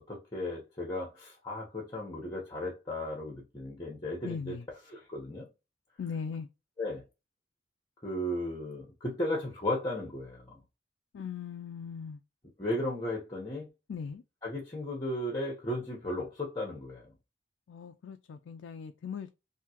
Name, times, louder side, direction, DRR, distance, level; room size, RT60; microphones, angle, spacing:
voice 1, 0.1-4.5 4.9-5.5 6.8-7.0 8.0-10.6 12.6-13.7 14.4-17.1, left 1 dB, 20° left, 1.0 m, -35 dB
voice 2, 4.2-4.6 6.0-6.5 11.1-12.2 13.9-14.2 17.7-19.3, left 6 dB, 75° left, 0.3 m, -39 dB
3.6 x 2.7 x 2.9 m
head